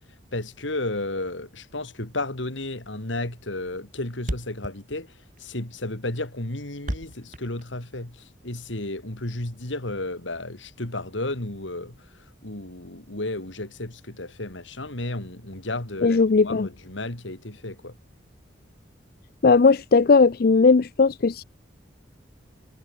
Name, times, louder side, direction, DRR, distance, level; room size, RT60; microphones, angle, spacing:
voice 1, 0.3-5.1 5.4-16.2 16.4-18.0, left 2 dB, 90° left, 3.5 m, -33 dB
Thump thud, 2.9-3.0 3.3-3.4 3.7-3.8 4.0-4.1 4.2-8.3, equal, 45° right, 5.8 m, -34 dB
voice 2, 16.0-16.7 19.4-21.4, left 4 dB, 50° left, 0.5 m, -17 dB
head